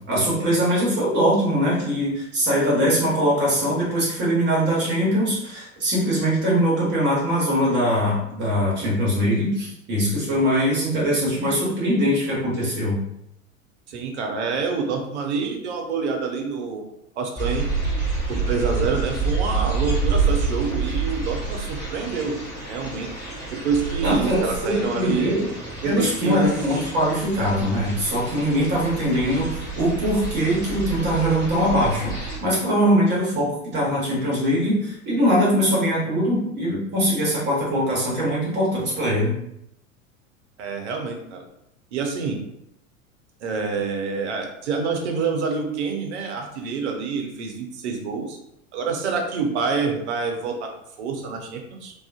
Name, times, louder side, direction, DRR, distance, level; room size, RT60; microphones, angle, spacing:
voice 1, 0.1-13.0 24.0-25.5 25.8-39.4, equal, 25° right, -7 dB, 1.0 m, -22 dB
voice 2, 13.9-16.8 17.2-17.7 18.3-23.1 23.5-25.3 25.8-26.5 40.6-41.4 41.9-42.4 43.4-48.4 48.7-50.7 51.0-51.9, right 4 dB, 55° right, 3 dB, 0.6 m, -27 dB
sound 1, 17.4-32.4, right 4 dB, 10° left, 1.0 m, -28 dB
2.4 x 2.3 x 2.4 m, 0.79 s
figure-of-eight pair, 85°, 41 cm